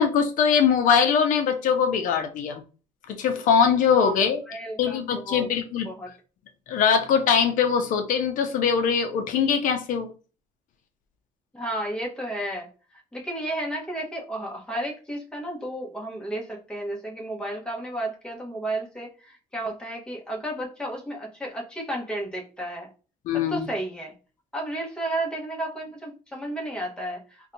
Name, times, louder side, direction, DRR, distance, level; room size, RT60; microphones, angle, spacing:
voice 1, 0.0-2.6 3.1-4.4 4.8-5.9 6.7-10.1 23.3-23.7, left 7 dB, 70° left, 0.5 m, -22 dB
voice 2, 3.9-5.0 5.2-5.5 5.8-6.1 11.5-12.7 13.1-22.9 23.3-24.1 24.5-27.5, right 1 dB, 5° left, 0.9 m, -32 dB
2.7 x 2.2 x 3.8 m
cardioid pair, 110°, 14 cm